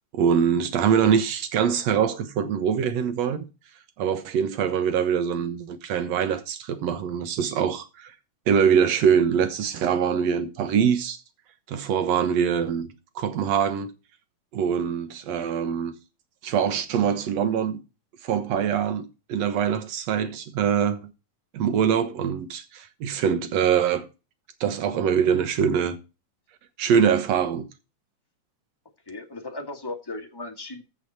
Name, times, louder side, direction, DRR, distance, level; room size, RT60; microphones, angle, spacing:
voice 1, 0.1-3.5 4.0-8.1 8.5-11.2 11.7-12.9 13.2-13.9 14.5-15.9 16.4-17.8 18.2-21.1 21.5-24.1 24.6-26.0 26.8-27.7, right 7 dB, 65° right, 2.3 m, -23 dB
voice 2, 29.1-30.8, left 2 dB, 20° left, 0.7 m, -36 dB
14.5 x 5.7 x 4.2 m
omnidirectional pair, 3.4 m